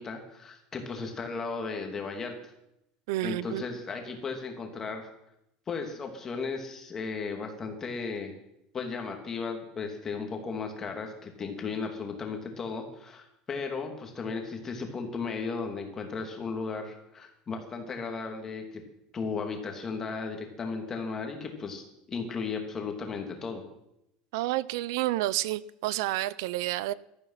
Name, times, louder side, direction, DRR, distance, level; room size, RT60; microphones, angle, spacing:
voice 1, 0.0-2.4 3.2-5.1 5.7-8.3 8.7-18.6 19.1-23.6, left 4 dB, 20° left, 2.7 m, -35 dB
voice 2, 3.1-3.6 24.3-26.9, right 16 dB, 85° right, 0.6 m, -30 dB
18.0 x 13.5 x 5.8 m
cardioid pair, 160°, 2 cm